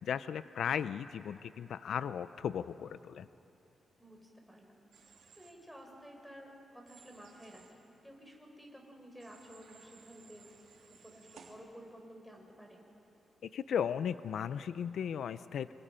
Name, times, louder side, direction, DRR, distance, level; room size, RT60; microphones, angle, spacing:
voice 1, 0.0-3.3 13.5-15.7, left 8 dB, 80° left, 14 dB, 0.4 m, -36 dB
voice 2, 4.0-4.8 5.3-10.5 10.9-12.8, equal, ahead, 1 dB, 4.3 m, -53 dB
Human voice / Train, 4.9-5.5 6.9-7.7 9.2-11.5, right 6 dB, 90° right, 3.0 m, -59 dB
26.0 x 25.0 x 5.6 m, 2.9 s
cardioid pair, 105°, 0 cm